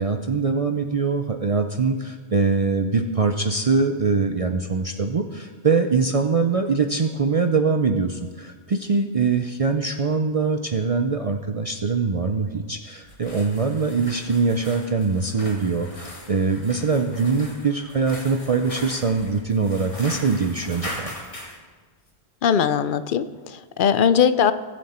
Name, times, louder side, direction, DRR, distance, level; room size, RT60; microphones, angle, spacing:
voice 1, 0.0-21.1, right 4 dB, 40° right, 6 dB, 0.5 m, -23 dB
sound 1, 13.0-21.6, left 1 dB, 30° left, 1.7 m, -39 dB
voice 2, 22.4-24.5, left 7 dB, 60° left, 13 dB, 0.6 m, -20 dB
22.0 x 7.6 x 4.3 m, 1.4 s
omnidirectional pair, 1.1 m